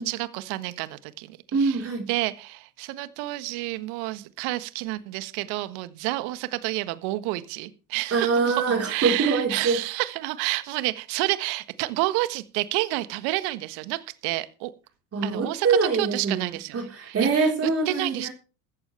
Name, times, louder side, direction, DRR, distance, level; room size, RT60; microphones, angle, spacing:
voice 1, 0.0-1.8 2.1-14.7 15.2-16.8 17.0-17.5 17.9-18.3, right 19 dB, 60° right, 13 dB, 1.6 m, -29 dB
voice 2, 1.5-2.1 8.1-9.8 15.1-18.3, right 4 dB, 30° right, 1 dB, 4.4 m, -24 dB
15.0 x 14.5 x 3.4 m, 0.35 s
hypercardioid pair, 70°, 45 cm